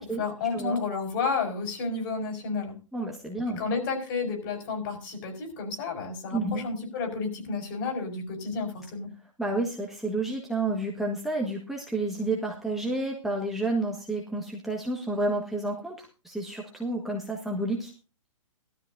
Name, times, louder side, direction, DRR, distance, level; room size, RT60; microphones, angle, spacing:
voice 1, 0.0-2.8 3.5-9.1, left 4 dB, 40° left, 4 dB, 4.9 m, -31 dB
voice 2, 2.9-3.6 6.3-6.6 9.4-17.9, right 2 dB, ahead, -2 dB, 1.5 m, -30 dB
18.0 x 13.0 x 2.7 m, 0.32 s
hypercardioid pair, 140°, 17 cm